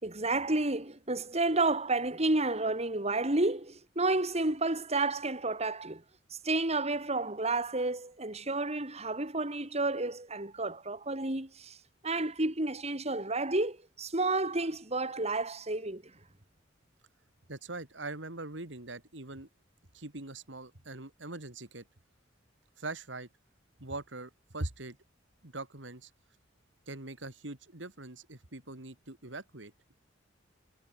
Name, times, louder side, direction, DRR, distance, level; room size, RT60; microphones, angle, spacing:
voice 1, 0.0-6.0 6.3-11.8 12.0-16.0, right 2 dB, 35° right, 3.8 m, -31 dB
voice 2, 17.5-19.5 19.9-21.9 22.8-23.3 23.8-25.0 25.4-26.1 26.9-29.7, right 2 dB, 70° right, 2.9 m, -42 dB
head